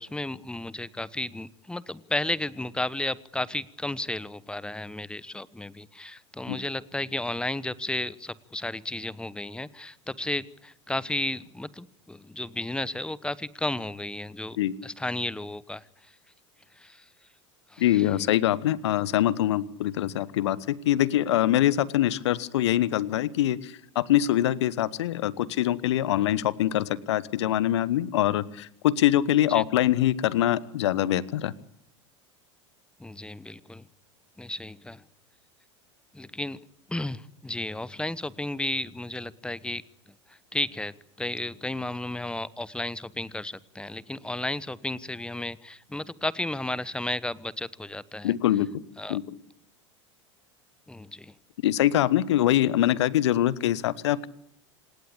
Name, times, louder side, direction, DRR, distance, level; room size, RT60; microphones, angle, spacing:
voice 1, 0.0-14.6 14.8-15.8 16.8-17.0 17.7-18.0 29.5-29.6 33.0-33.9 34.4-35.0 36.1-36.6 36.9-39.8 40.3-48.3 49.0-49.2 50.9-51.3, left 2 dB, 5° left, 19 dB, 1.1 m, -33 dB
voice 2, 17.8-31.5 48.2-48.7 49.1-49.2 51.6-54.3, left 12 dB, 70° left, 20 dB, 1.1 m, -24 dB
26.5 x 19.0 x 8.6 m, 0.73 s
figure-of-eight pair, 80°, 15 cm